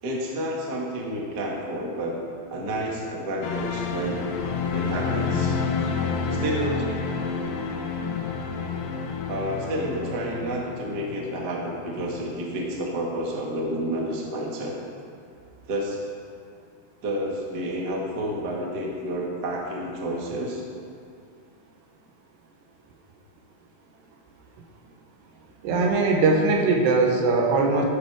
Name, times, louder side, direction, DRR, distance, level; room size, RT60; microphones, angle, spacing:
voice 1, 0.0-2.2 2.5-4.2 4.7-5.6 6.3-7.0 9.3-14.8 15.7-16.1 17.0-20.6, right 1 dB, 50° right, -2 dB, 1.2 m, -30 dB
sound 1, 3.4-12.6 12.8-13.0, left 5 dB, 80° left, 2.0 m, -29 dB
voice 2, 25.6-27.8, right 3 dB, 75° right, 1 dB, 3.3 m, -20 dB
13.5 x 11.5 x 4.9 m, 2.3 s
omnidirectional pair, 5.1 m